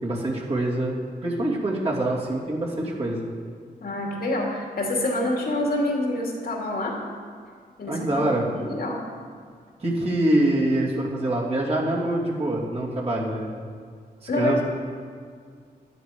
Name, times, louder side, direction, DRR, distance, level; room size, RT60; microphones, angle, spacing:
voice 1, 0.0-3.3 7.9-8.5 9.8-13.7 14.3-14.6, right 1 dB, 40° right, -4 dB, 2.8 m, -25 dB
voice 2, 3.8-7.0 7.8-9.0 14.3-14.6, left 1 dB, 70° left, -1 dB, 2.5 m, -27 dB
11.0 x 11.0 x 5.1 m, 2.1 s
wide cardioid pair, 105°, 16 cm